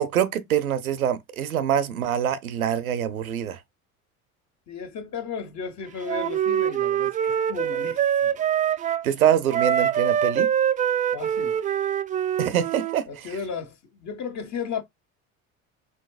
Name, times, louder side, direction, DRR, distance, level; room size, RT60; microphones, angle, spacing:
voice 1, 0.0-3.6 9.0-10.5 12.4-13.4, right 9 dB, 90° right, 0.7 m, -24 dB
voice 2, 4.7-8.5 11.1-11.6 13.1-14.8, left 6 dB, 40° left, 1.5 m, -34 dB
Wind instrument woodwind instrument, 6.1-9.1 9.5-13.0, right 9 dB, 20° right, 0.3 m, -24 dB
4.1 x 3.9 x 2.4 m
hypercardioid pair, 70°, 41 cm